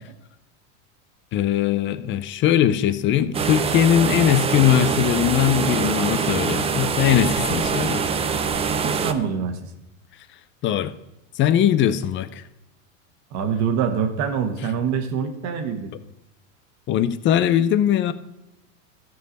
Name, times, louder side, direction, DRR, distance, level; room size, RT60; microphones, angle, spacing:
voice 1, 1.3-8.0 10.6-10.9 11.4-12.4 16.9-18.1, left 10 dB, 30° left, 13 dB, 0.6 m, -20 dB
sound 1, 3.3-9.1, right 6 dB, 15° right, 0.5 m, -24 dB
voice 2, 8.8-9.7 13.3-15.9, right 7 dB, 45° right, 7 dB, 1.4 m, -25 dB
14.0 x 4.7 x 6.4 m, 0.92 s
supercardioid pair, 120°, 40 cm